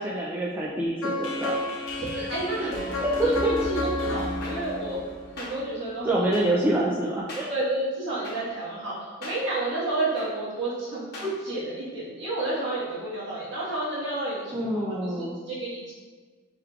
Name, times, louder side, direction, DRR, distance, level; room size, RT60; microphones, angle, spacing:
voice 1, 0.0-1.6 2.6-2.7 3.0-3.5 6.1-7.5 14.5-15.3, right 1 dB, 10° right, -6 dB, 0.3 m, -26 dB
sound 1, 1.0-6.0, left 1 dB, 65° left, 0.7 m, -31 dB
voice 2, 2.0-2.8 3.2-5.0 5.4-6.3 7.5-15.9, right 2 dB, 55° right, -9 dB, 1.5 m, -31 dB
sound 2, 4.4-4.5 5.4-5.5 6.3-6.4 7.3-7.4 8.2-8.3 9.2-9.3 10.2-10.3 11.1-11.3, left 2 dB, 50° left, 1.2 m, -38 dB
4.7 x 3.5 x 2.3 m, 1.4 s
head